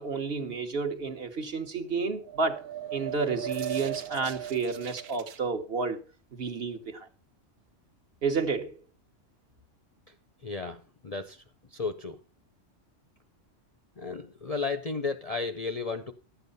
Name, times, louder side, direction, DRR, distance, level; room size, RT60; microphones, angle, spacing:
voice 1, 0.0-2.6 2.9-6.0 6.4-7.1 8.2-8.8, right 4 dB, 50° right, 1.3 m, -31 dB
sound 1, 2.1-5.4, right 11 dB, 85° right, 1.2 m, -37 dB
voice 2, 10.4-11.4 11.7-12.2 14.0-16.1, left 4 dB, 40° left, 0.6 m, -33 dB
11.5 x 8.0 x 5.4 m
omnidirectional pair, 1.3 m